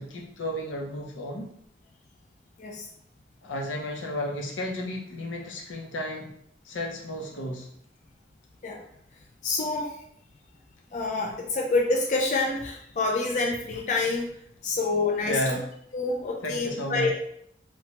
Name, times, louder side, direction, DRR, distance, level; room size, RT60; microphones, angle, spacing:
voice 1, 0.0-1.5 3.4-6.3 6.6-7.7 15.2-15.6 16.4-17.1, left 1 dB, 90° left, 0 dB, 0.6 m, -32 dB
voice 2, 9.4-9.9 10.9-14.4 14.6-15.6 15.9-17.1, left 3 dB, 40° left, 0 dB, 0.3 m, -27 dB
3.0 x 2.1 x 2.8 m, 0.69 s
head